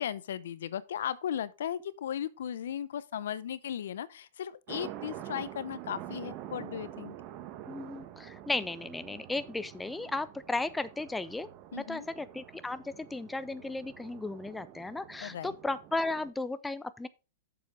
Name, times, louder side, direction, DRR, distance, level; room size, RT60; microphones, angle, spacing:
voice 1, 0.0-7.1 11.7-12.1 15.2-15.5, left 9 dB, 80° left, 0.7 m, -36 dB
sound 1, 4.7-16.3, right 12 dB, 40° right, 1.1 m, -46 dB
voice 2, 7.7-11.5 11.7-17.1, left 2 dB, 5° left, 0.5 m, -35 dB
8.1 x 7.0 x 3.8 m
hypercardioid pair, 135°, 0 cm